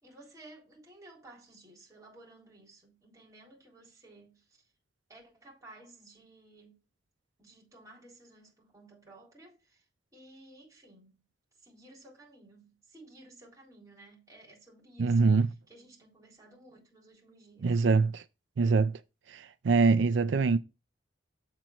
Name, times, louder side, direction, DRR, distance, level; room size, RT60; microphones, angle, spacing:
voice 1, 0.0-4.7 5.1-6.8 7.4-11.3 11.5-17.9, right 2 dB, 20° right, 3.6 m, -55 dB
voice 2, 15.0-15.5 17.6-18.2 18.6-19.0 19.3-20.6, right 4 dB, 85° right, 0.4 m, -24 dB
7.4 x 4.5 x 5.2 m
head